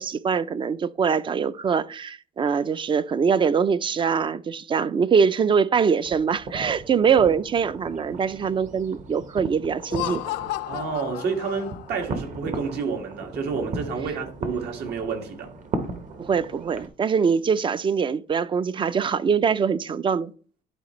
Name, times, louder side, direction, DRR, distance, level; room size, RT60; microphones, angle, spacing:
voice 1, 0.0-10.2 16.2-20.3, right 6 dB, 30° right, 0.4 m, -23 dB
sound 1, 6.0-16.9, right 3 dB, 50° right, 1.1 m, -37 dB
Laughter, 9.8-12.1, left 16 dB, 85° left, 0.5 m, -33 dB
voice 2, 10.7-15.5, right 5 dB, 75° right, 1.8 m, -29 dB
11.0 x 4.3 x 3.1 m
cardioid pair, 110°, 17 cm